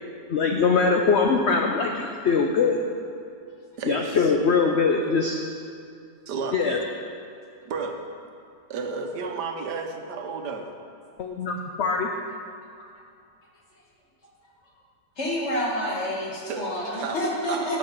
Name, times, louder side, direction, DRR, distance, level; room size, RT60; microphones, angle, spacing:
voice 1, 0.3-2.8 3.9-5.4 6.5-6.8 11.2-12.1, left 4 dB, 65° left, 2 dB, 0.7 m, -22 dB
voice 2, 3.8-4.3 6.3-6.8 7.6-8.0 8.7-10.7 16.5-16.7 17.0-17.2 17.5-17.8, right 4 dB, 75° right, 4 dB, 1.4 m, -32 dB
voice 3, 15.2-17.8, equal, 40° left, -3 dB, 1.9 m, -28 dB
10.5 x 6.5 x 5.9 m, 2.5 s
omnidirectional pair, 1.8 m